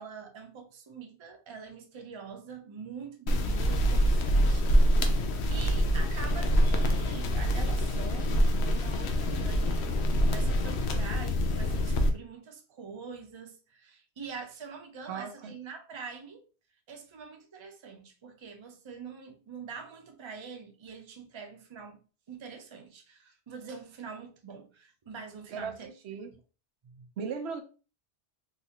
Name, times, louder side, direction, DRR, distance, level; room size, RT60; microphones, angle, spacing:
voice 1, 0.0-5.2 5.5-9.9 10.2-16.4 16.9-22.0 22.3-25.9 26.8-27.1, right 5 dB, 35° right, 0.5 m, -45 dB
sound 1, 3.3-12.1, equal, 85° left, 0.9 m, -25 dB
voice 2, 15.1-15.5 25.5-26.3 27.2-27.6, right 6 dB, 90° right, 0.9 m, -37 dB
3.8 x 2.4 x 2.8 m
omnidirectional pair, 1.1 m